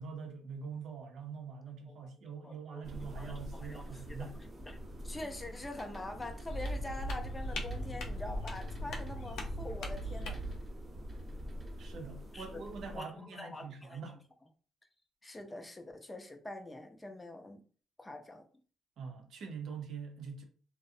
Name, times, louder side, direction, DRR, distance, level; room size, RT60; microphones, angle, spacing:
voice 1, 0.0-4.4 11.8-14.2 19.0-20.4, right 5 dB, 70° right, 0.6 m, -44 dB
voice 2, 2.4-4.3 4.6-4.8 5.0-10.4 12.3-12.6 12.9-14.0 15.2-17.6 18.0-18.5, left 2 dB, 15° left, 0.5 m, -45 dB
sound 1, 2.8-13.0, equal, 30° right, 0.7 m, -45 dB
sound 2, 6.5-10.6, equal, 80° left, 0.5 m, -39 dB
2.4 x 2.0 x 2.6 m
cardioid pair, 90°, 0 cm